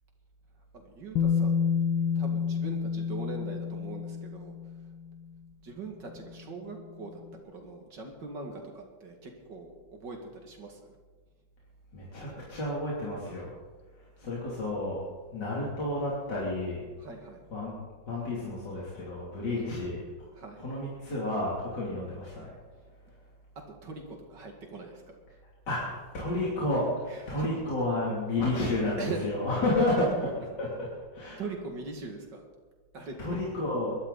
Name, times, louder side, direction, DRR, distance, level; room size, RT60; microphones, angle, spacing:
voice 1, 0.7-1.7 2.2-4.5 5.6-11.0 17.0-17.4 20.3-20.7 23.8-25.2 27.1-27.5 29.0-29.4 29.8-29.9 31.4-32.4 32.9-33.4, right 3 dB, 65° right, 2 dB, 3.0 m, -41 dB
Bass guitar, 1.2-5.1 6.2-6.3, left 6 dB, 80° left, 1.8 m, -29 dB
voice 2, 11.9-13.5 14.2-15.0 15.3-16.8 17.5-17.7 18.1-20.0 20.6-22.5 25.7-30.7 31.1-31.4 33.2-33.9, left 1 dB, 60° left, -6 dB, 3.8 m, -31 dB
22.0 x 12.5 x 4.2 m, 1.4 s
omnidirectional pair, 2.1 m